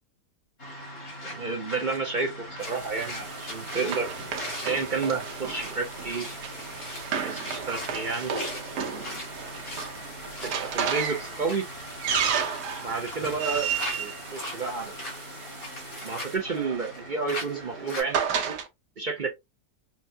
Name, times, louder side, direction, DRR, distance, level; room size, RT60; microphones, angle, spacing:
sound 1, 0.6-18.0, left 1 dB, 45° left, 2.7 m, -39 dB
voice 1, 1.2-2.3 2.6-4.1 4.6-6.3 7.2-8.3 10.4-11.6 12.8-13.7 14.0-15.0 16.0-18.6 19.0-19.3, right 4 dB, 60° right, 0.4 m, -30 dB
sound 2, 2.6-16.4, right 2 dB, 25° right, 0.8 m, -45 dB
Run, 2.6-15.2 16.2-18.7, right 7 dB, 80° right, 1.4 m, -33 dB
5.7 x 2.2 x 2.6 m
omnidirectional pair, 1.7 m